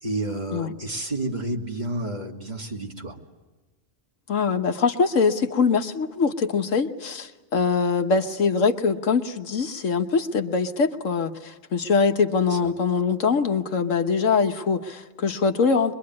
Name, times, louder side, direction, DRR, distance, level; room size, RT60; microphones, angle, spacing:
voice 1, 0.0-3.2 12.5-12.7, right 2 dB, 35° right, 0 dB, 2.8 m, -30 dB
voice 2, 4.3-15.9, left 5 dB, 75° left, 7 dB, 1.5 m, -23 dB
24.5 x 22.5 x 9.6 m, 1.3 s
omnidirectional pair, 1.4 m